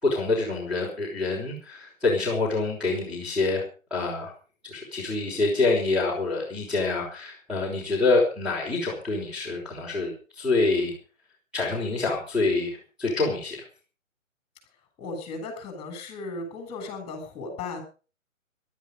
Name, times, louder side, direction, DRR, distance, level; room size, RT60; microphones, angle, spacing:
voice 1, 0.0-3.6 3.9-4.3 4.7-10.9 11.5-13.6, left 3 dB, ahead, -4 dB, 4.7 m, -26 dB
voice 2, 15.0-17.8, left 3 dB, 15° left, 6 dB, 7.1 m, -36 dB
18.5 x 12.0 x 5.2 m, 0.37 s
hypercardioid pair, 150°, 40 cm